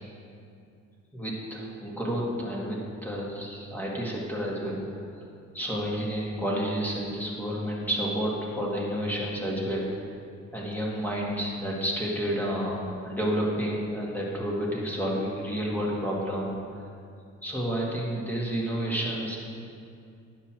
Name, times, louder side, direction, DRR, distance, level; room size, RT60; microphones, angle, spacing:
voice 1, 1.1-5.1 5.5-9.9 10.5-16.8 17.4-19.4, equal, 5° left, -4 dB, 1.9 m, -30 dB
9.5 x 6.2 x 4.4 m, 2.4 s
cardioid pair, 90°, 30 cm